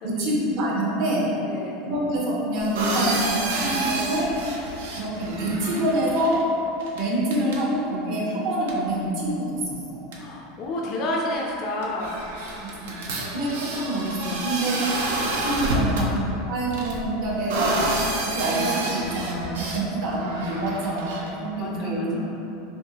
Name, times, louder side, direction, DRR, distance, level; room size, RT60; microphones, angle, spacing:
voice 1, 0.0-1.3 1.8-4.3 5.0-6.4 6.9-9.6 9.9-10.1 12.6-12.7 13.2-14.9 15.2-16.1 16.5-17.8 18.2-22.2, right 1 dB, 60° right, -4 dB, 0.8 m, -26 dB
voice 2, 1.4-1.8 10.2-12.2 12.5-13.3 21.6-22.3, left 1 dB, 45° left, -2 dB, 0.4 m, -31 dB
sound 1, 2.6-6.4 6.8-7.0 7.3-7.6 8.7-8.8 9.7-9.8 10.1-10.2 11.5-11.6 11.8-16.1 16.7-19.8 20.2-21.3, right 2 dB, 85° right, 0.5 m, -29 dB
3.5 x 2.7 x 2.8 m, 3.0 s
supercardioid pair, 115°, 0 cm